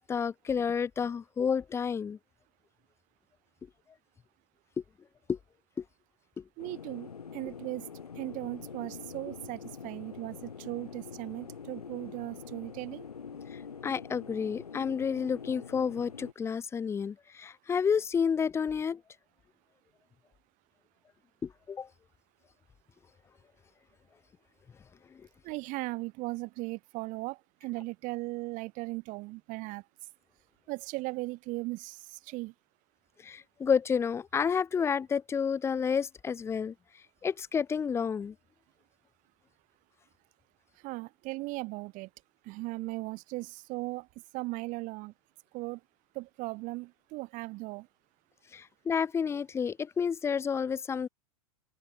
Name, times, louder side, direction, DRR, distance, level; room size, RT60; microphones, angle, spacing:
voice 1, 0.1-2.2 5.3-5.4 6.4-6.5 13.8-19.0 21.4-21.9 33.2-36.7 37.2-38.3 48.5-51.1, left 6 dB, 15° left, 0.5 m, -30 dB
sound 1, 6.6-16.3, left 6 dB, 85° left, 2.4 m, -45 dB
voice 2, 6.6-7.9 8.2-13.0 25.4-29.8 30.7-32.5 40.8-42.1 42.4-44.1 44.3-45.1 45.5-45.8 46.1-47.9, right 23 dB, 45° right, 3.9 m, -38 dB
open air
hypercardioid pair, 100°, 19 cm